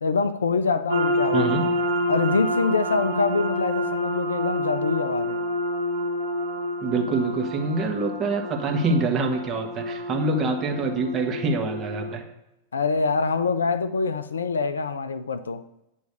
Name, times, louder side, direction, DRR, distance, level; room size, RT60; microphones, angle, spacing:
voice 1, 0.0-1.7 2.1-5.4 12.7-15.6, left 4 dB, 70° left, 0.4 m, -25 dB
sound 1, 0.9-12.1, equal, 60° right, 1.3 m, -28 dB
voice 2, 1.3-1.6 6.8-12.2, right 3 dB, 30° right, 1.3 m, -25 dB
9.2 x 3.2 x 6.6 m
figure-of-eight pair, 90°, 0 cm